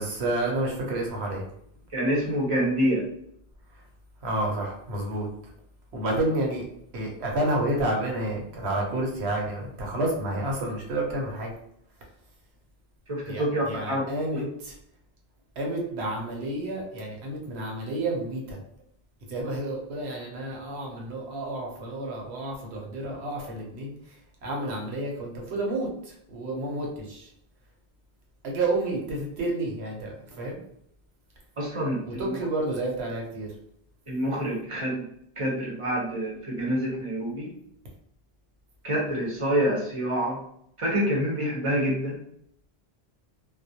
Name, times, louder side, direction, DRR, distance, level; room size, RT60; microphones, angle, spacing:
voice 1, 0.0-1.4 4.2-5.3 5.9-6.6 6.9-11.5 13.3-14.7 15.6-18.6 19.3-23.9 24.4-27.3 28.4-30.6 32.0-33.5, right 1 dB, 80° right, 0 dB, 0.9 m, -30 dB
voice 2, 1.9-3.0 13.1-14.0 14.3-14.4 31.6-32.4 34.1-35.0 35.4-37.5 38.8-40.4 40.8-42.2, equal, 35° right, -3 dB, 0.7 m, -27 dB
2.3 x 2.0 x 2.7 m, 0.71 s
omnidirectional pair, 1.1 m